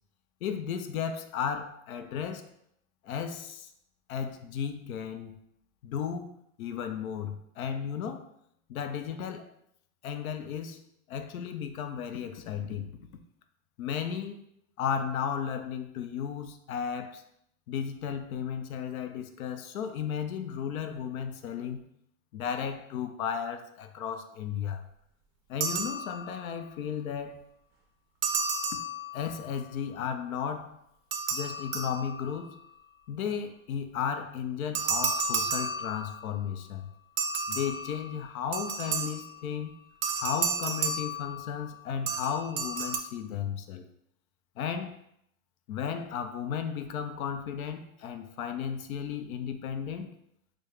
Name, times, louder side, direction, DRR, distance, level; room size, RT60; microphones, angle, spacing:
voice 1, 0.4-2.5 3.0-3.7 4.1-5.3 5.8-8.3 8.7-9.5 10.0-10.8 11.1-12.9 13.8-14.4 14.8-17.2 17.7-21.8 22.3-24.8 25.5-27.4 29.1-30.8 31.3-32.6 33.1-36.9 37.5-39.8 40.2-43.9 44.6-45.0 45.7-50.1, left 7 dB, 90° left, 8 dB, 0.6 m, -34 dB
sound 1, 25.6-26.5 28.2-29.5 31.1-32.5 34.7-36.4 37.2-39.4 40.0-41.7 42.1-43.0, right 4 dB, 45° right, 0.5 m, -32 dB
4.6 x 2.1 x 3.1 m, 0.74 s
supercardioid pair, 140°, 41 cm